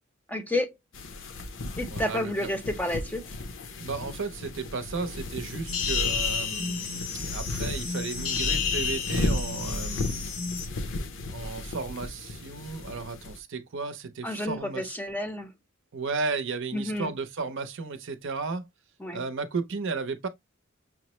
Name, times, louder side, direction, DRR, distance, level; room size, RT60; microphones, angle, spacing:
voice 1, 0.3-0.7 1.8-3.3 14.2-15.5 16.7-17.1 19.0-19.2, left 1 dB, 10° left, 0.6 m, -30 dB
sound 1, 0.9-13.4, left 2 dB, 65° left, 0.6 m, -35 dB
voice 2, 1.9-2.3 3.8-10.1 11.3-15.0 15.9-18.6 19.1-20.3, right 4 dB, 65° right, 0.6 m, -34 dB
sound 2, 5.7-10.7, left 5 dB, 85° left, 1.1 m, -30 dB
5.9 x 2.0 x 3.0 m
head